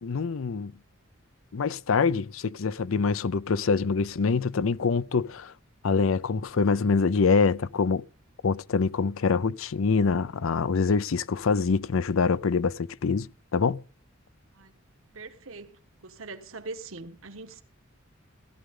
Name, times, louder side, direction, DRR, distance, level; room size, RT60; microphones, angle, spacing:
voice 1, 0.0-0.7 1.5-5.5 5.8-8.0 8.4-13.8, left 4 dB, 70° left, 0.5 m, -25 dB
voice 2, 15.1-17.6, right 3 dB, 70° right, 1.4 m, -42 dB
16.5 x 12.5 x 3.7 m
head